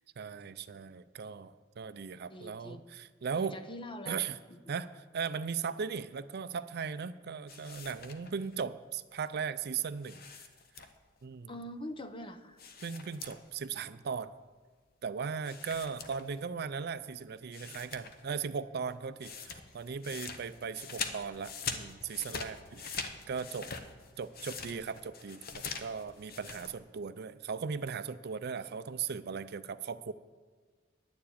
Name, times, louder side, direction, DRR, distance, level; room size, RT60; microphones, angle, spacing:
voice 1, 0.2-3.6 4.1-4.4 4.7-10.2 10.8-10.9 11.2-11.5 12.8-14.3 15.0-23.7 24.2-30.1, right 6 dB, 55° right, 13 dB, 0.5 m, -38 dB
voice 2, 2.3-3.0 3.3-4.2 4.5-4.7 11.5-12.6, left 1 dB, 25° left, 10 dB, 0.7 m, -44 dB
sound 1, 7.5-8.6 10.0-11.2 12.6-13.7 14.0-14.1 15.4-16.6 17.1-17.2 17.5-18.4 18.6-26.7, left 5 dB, 50° left, 0.9 m, -43 dB
10.5 x 7.1 x 8.7 m, 1.5 s
head